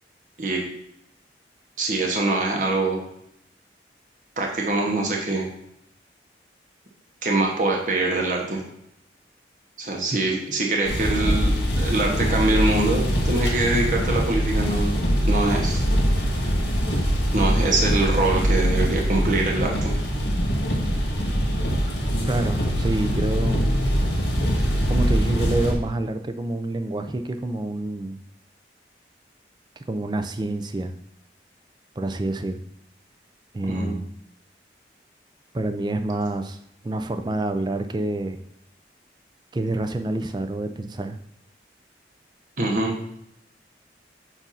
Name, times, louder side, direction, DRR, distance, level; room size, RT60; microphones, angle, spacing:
voice 1, 1.8-3.0 4.4-5.5 7.2-8.6 9.8-14.9 15.2-15.8 17.3-19.9 33.7-33.9 42.6-42.9, right 2 dB, 45° right, 0 dB, 0.9 m, -24 dB
sound 1, 10.9-25.7, equal, 85° left, 1.6 m, -23 dB
voice 2, 22.3-23.7 24.9-28.2 29.9-30.9 32.0-32.6 33.5-34.1 35.5-36.6 36.8-38.4 39.5-41.2, right 2 dB, 25° right, 8 dB, 0.4 m, -27 dB
7.3 x 2.6 x 5.5 m, 0.74 s
head